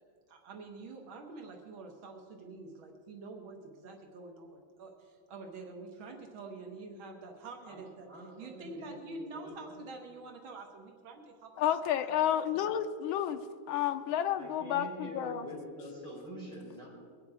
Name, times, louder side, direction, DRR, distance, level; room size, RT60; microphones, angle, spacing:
voice 1, 0.3-8.1 8.4-11.8 12.1-12.7, right 3 dB, 80° right, 3 dB, 2.0 m, -47 dB
voice 2, 7.6-9.7 14.0-16.9, equal, ahead, -6 dB, 4.3 m, -46 dB
voice 3, 11.6-13.4 13.7-14.9 15.1-15.4, left 10 dB, 90° left, 7 dB, 1.5 m, -30 dB
22.5 x 9.2 x 4.8 m, 2.1 s
omnidirectional pair, 2.2 m